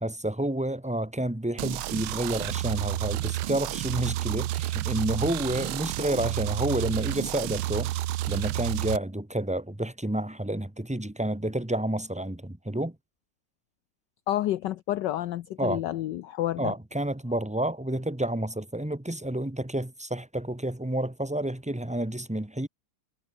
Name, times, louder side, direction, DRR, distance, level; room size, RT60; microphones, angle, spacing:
voice 1, 0.0-7.9 8.3-12.9 15.6-15.8 16.6-22.7, right 1 dB, 5° right, 0.9 m, -30 dB
sound 1, 1.6-9.0, right 15 dB, 80° right, 1.6 m, -30 dB
voice 2, 14.3-16.7, left 13 dB, 70° left, 1.2 m, -29 dB
omnidirectional pair, 2.3 m